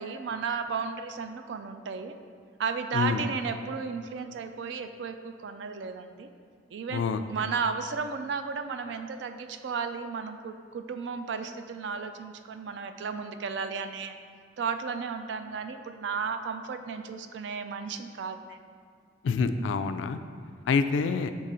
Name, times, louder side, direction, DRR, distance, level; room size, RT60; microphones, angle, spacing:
voice 1, 0.0-2.2 2.6-6.3 6.7-7.0 7.3-14.2 14.6-18.6, right 5 dB, 70° right, 8 dB, 0.3 m, -34 dB
voice 2, 2.9-3.2 6.9-7.2 19.2-20.2 20.7-21.3, left 5 dB, 85° left, 10 dB, 0.3 m, -26 dB
5.9 x 3.8 x 4.2 m, 2.1 s
head